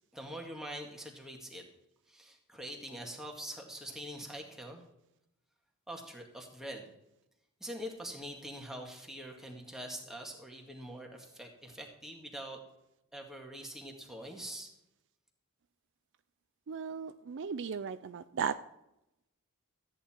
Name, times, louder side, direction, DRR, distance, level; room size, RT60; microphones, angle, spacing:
voice 1, 0.1-1.6 2.1-4.8 5.9-6.9 7.6-12.6 13.1-14.7, equal, ahead, 0 dB, 2.0 m, -44 dB
voice 2, 16.7-18.5, right 6 dB, 55° right, 12 dB, 0.4 m, -36 dB
14.0 x 9.4 x 4.4 m, 0.88 s
head